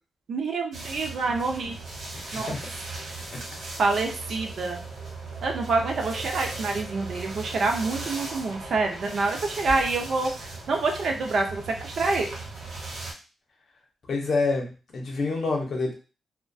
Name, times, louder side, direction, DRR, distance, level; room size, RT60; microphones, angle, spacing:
voice 1, 0.3-1.8 2.3-2.5 3.8-4.8 5.4-10.3 10.7-12.3, right 3 dB, 55° right, 2 dB, 0.5 m, -27 dB
sound 1, 0.7-13.1, right 3 dB, 75° right, 1.0 m, -38 dB
voice 2, 14.1-15.9, left 3 dB, 50° left, 0 dB, 0.7 m, -27 dB
2.2 x 2.1 x 2.6 m, 0.34 s
wide cardioid pair, 145°, 0 cm